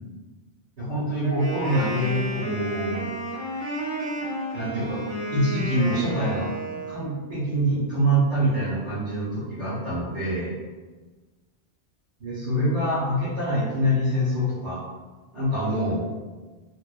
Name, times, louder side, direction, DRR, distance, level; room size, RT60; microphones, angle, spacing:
voice 1, 0.8-3.0 4.5-5.0 5.3-6.5 6.9-10.5 12.2-14.8 15.3-16.0, equal, 90° right, -9 dB, 1.1 m, -25 dB
Wind instrument woodwind instrument, 1.2-7.1, right 1 dB, 35° right, 0.5 m, -31 dB
2.5 x 2.0 x 2.4 m, 1.3 s
omnidirectional pair, 1.2 m